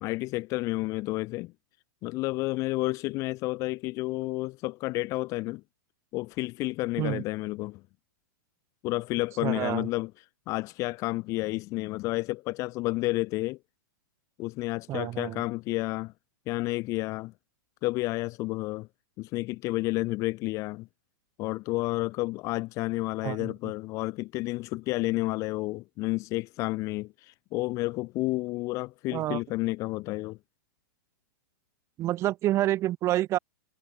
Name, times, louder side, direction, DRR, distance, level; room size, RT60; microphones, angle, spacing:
voice 1, 0.0-1.5 2.0-5.6 6.1-7.8 8.8-10.1 10.5-13.6 14.4-16.1 16.5-17.3 17.8-18.9 19.2-20.9 21.4-30.4, left 21 dB, 30° left, 0.7 m, -30 dB
voice 2, 9.4-9.9 14.9-15.4 23.2-23.5 29.1-29.4 32.0-33.4, right 14 dB, 25° right, 1.7 m, -28 dB
hypercardioid pair, 150°, 11 cm